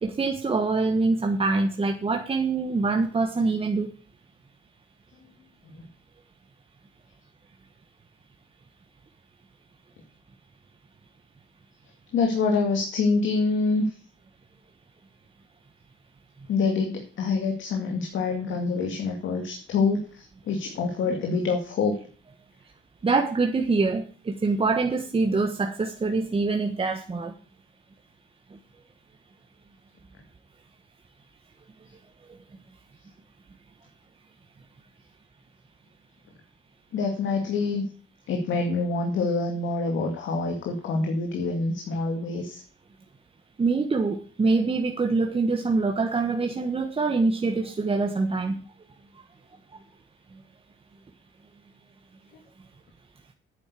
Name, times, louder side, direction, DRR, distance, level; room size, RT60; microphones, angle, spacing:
voice 1, 0.0-3.9 23.0-27.3 43.6-48.6, right 3 dB, 30° right, 3 dB, 1.3 m, -25 dB
voice 2, 12.1-13.8 16.5-22.0 36.9-37.9 38.3-42.6, left 4 dB, 75° left, 2 dB, 2.3 m, -26 dB
9.7 x 8.2 x 8.4 m, 0.42 s
cardioid pair, 90°, 20 cm